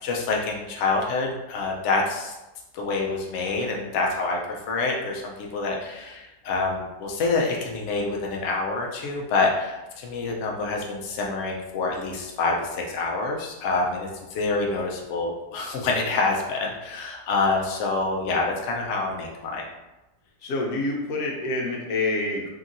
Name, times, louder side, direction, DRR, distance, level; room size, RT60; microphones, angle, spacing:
voice 1, 0.0-2.3 2.7-19.6, left 3 dB, 85° left, -1 dB, 0.6 m, -27 dB
voice 2, 20.4-22.5, left 2 dB, 65° left, -1 dB, 1.0 m, -27 dB
2.9 x 2.7 x 2.5 m, 1.0 s
omnidirectional pair, 1.8 m